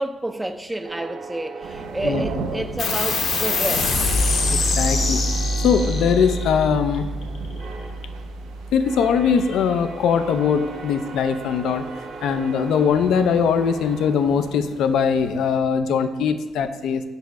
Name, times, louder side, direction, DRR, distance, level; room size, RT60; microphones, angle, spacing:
voice 1, 0.0-4.0, right 1 dB, 10° right, 0.4 m, -29 dB
sound 1, 0.8-3.3 3.7-14.9, right 4 dB, 60° right, 0.8 m, -40 dB
sound 2, 1.6-15.6, right 4 dB, 85° right, 0.5 m, -39 dB
sound 3, 2.8-9.7, left 2 dB, 65° left, 1.0 m, -24 dB
voice 2, 4.8-5.2 5.6-7.1 8.7-11.9 12.2-17.0, left 6 dB, 80° left, 0.4 m, -21 dB
4.6 x 4.1 x 5.3 m
cardioid pair, 90°, 0 cm